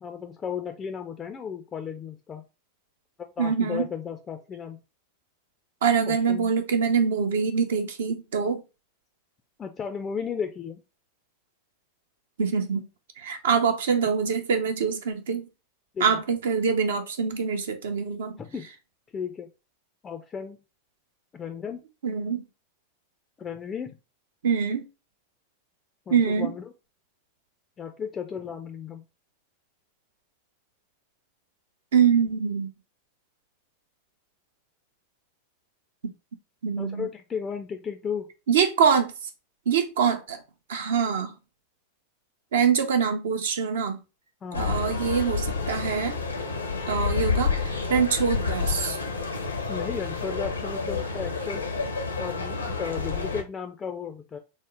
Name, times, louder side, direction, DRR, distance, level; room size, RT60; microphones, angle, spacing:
voice 1, 0.0-2.4 3.4-4.8 6.1-6.5 9.6-10.8 15.9-16.2 18.4-18.7 19.1-19.5 20.0-20.6 21.3-21.8 23.4-23.9 26.1-26.6 27.8-29.0 36.8-38.3 44.4-44.8 49.7-51.6 52.2-54.4, left 7 dB, 20° left, 0.3 m, -34 dB
voice 2, 3.4-3.9 5.8-8.6 12.4-12.9 13.2-15.5 16.0-18.4 22.0-22.5 24.4-24.9 26.1-26.5 31.9-32.7 36.6-37.1 38.5-39.1 39.7-40.4 40.7-41.3 42.5-44.0 44.5-46.2 46.9-49.0, right 6 dB, 60° right, 0.6 m, -24 dB
sound 1, 44.5-53.4, left 5 dB, 80° left, 0.6 m, -29 dB
3.6 x 2.1 x 3.5 m
figure-of-eight pair, 90°, 0 cm